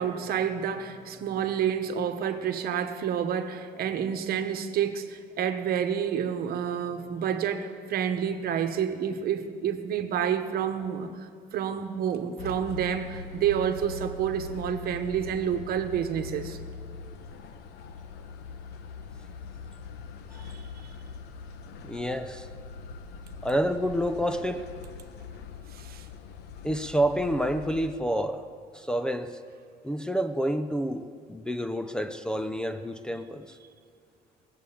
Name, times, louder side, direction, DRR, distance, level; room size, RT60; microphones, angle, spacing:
voice 1, 0.0-16.6 20.4-20.9 25.7-26.1, right 8 dB, 65° right, 7 dB, 1.2 m, -29 dB
sound 1, 12.4-27.9, left 5 dB, 85° left, 1.0 m, -42 dB
voice 2, 21.8-22.5 23.4-24.7 26.6-28.4 28.7-29.3 29.8-33.5, equal, 5° left, 6 dB, 0.6 m, -28 dB
19.5 x 7.7 x 8.6 m, 2.3 s
cardioid pair, 110°, 17 cm